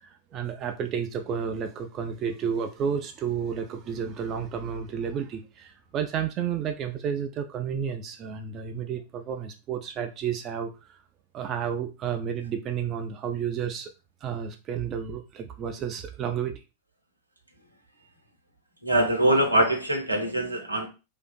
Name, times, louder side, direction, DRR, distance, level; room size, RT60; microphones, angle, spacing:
voice 1, 0.0-10.7 11.3-13.9 14.2-16.6, right 7 dB, 30° right, 0.3 m, -31 dB
voice 2, 18.8-20.9, right 1 dB, 85° right, 0.6 m, -23 dB
2.6 x 2.4 x 2.2 m
figure-of-eight pair, 90°, 0 cm